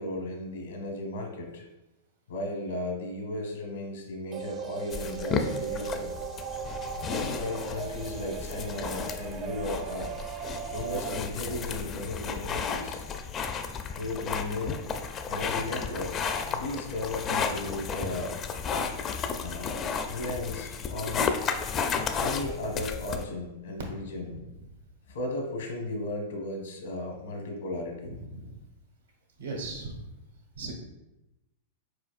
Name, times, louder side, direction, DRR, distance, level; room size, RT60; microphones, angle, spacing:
voice 1, 0.0-1.6 2.3-6.1 7.1-10.1 10.7-13.1 13.9-14.8 15.3-18.4 19.4-21.3 22.2-24.4 25.1-28.1, left 2 dB, 80° left, 2 dB, 1.2 m, -35 dB
sound 1, 4.3-11.2, right 7 dB, 35° right, 0.5 m, -37 dB
sound 2, 4.9-23.2, left 6 dB, 30° left, 0.4 m, -33 dB
voice 2, 28.1-28.6 29.4-30.0 30.6-30.7, right 3 dB, 90° right, -1 dB, 1.4 m, -38 dB
4.9 x 4.4 x 2.4 m, 0.97 s
hypercardioid pair, 110°, 0 cm